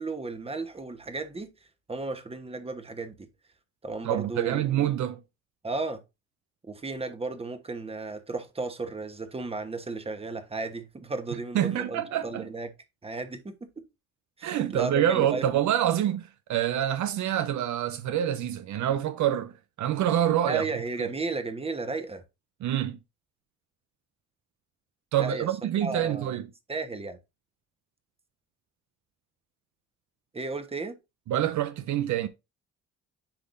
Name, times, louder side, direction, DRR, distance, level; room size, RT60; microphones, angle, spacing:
voice 1, 0.0-1.5 1.9-3.3 3.8-4.9 5.6-6.0 6.7-12.7 13.0-13.8 14.4-15.5 20.4-22.2 25.2-25.5 25.8-26.4 26.7-27.2 30.3-31.0, right 3 dB, 20° right, 1.2 m, -34 dB
voice 2, 4.0-5.2 11.5-12.5 14.4-20.6 21.0-21.1 22.6-23.0 25.1-26.5 31.3-32.3, right 11 dB, 70° right, 0.6 m, -26 dB
10.0 x 3.7 x 2.6 m
cardioid pair, 90°, 30 cm